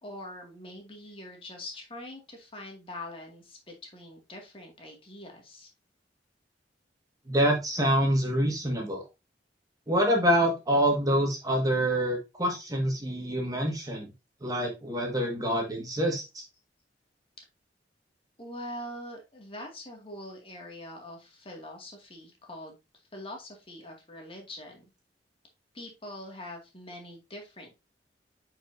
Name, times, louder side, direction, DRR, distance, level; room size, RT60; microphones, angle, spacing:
voice 1, 0.0-5.7 18.4-22.7 23.1-24.8 25.7-27.8, left 1 dB, 30° left, 1 dB, 2.2 m, -43 dB
voice 2, 7.3-9.0 9.9-14.1 14.4-16.4, equal, 20° right, 1 dB, 1.7 m, -26 dB
8.8 x 5.1 x 2.7 m, 0.25 s
head